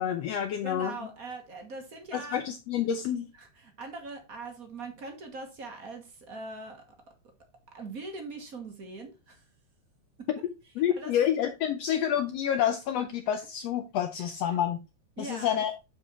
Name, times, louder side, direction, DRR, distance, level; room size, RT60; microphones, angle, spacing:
voice 1, 0.0-0.9 2.1-3.3 10.8-14.8 15.2-15.7, left 9 dB, 75° left, 6 dB, 1.6 m, -28 dB
voice 2, 0.6-2.4 3.4-6.8 7.7-9.4 10.2-10.3 11.0-11.1 14.2-14.6 15.2-15.6, right 3 dB, 45° right, 4 dB, 1.2 m, -41 dB
8.0 x 4.8 x 4.2 m, 0.27 s
omnidirectional pair, 3.4 m